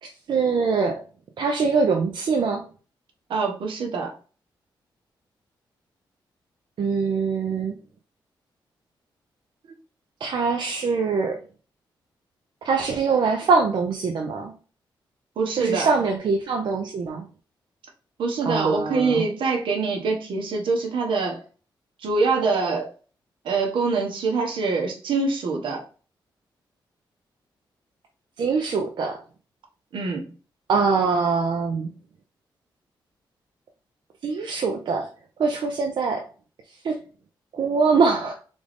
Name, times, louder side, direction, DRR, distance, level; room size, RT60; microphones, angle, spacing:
voice 1, 0.0-1.0 1.4-2.6 6.8-7.8 10.2-11.4 12.6-14.5 15.6-17.2 18.4-19.2 28.4-29.2 30.7-31.9 34.2-35.1 35.4-36.2 36.8-37.0 37.5-38.4, right 4 dB, 65° right, 0.7 m, -23 dB
voice 2, 3.3-4.1 15.4-15.9 18.2-21.4 22.0-22.9 23.4-25.8 29.9-30.3, right 4 dB, 80° right, 1.2 m, -24 dB
3.8 x 3.4 x 3.5 m
cardioid pair, 95°, 8 cm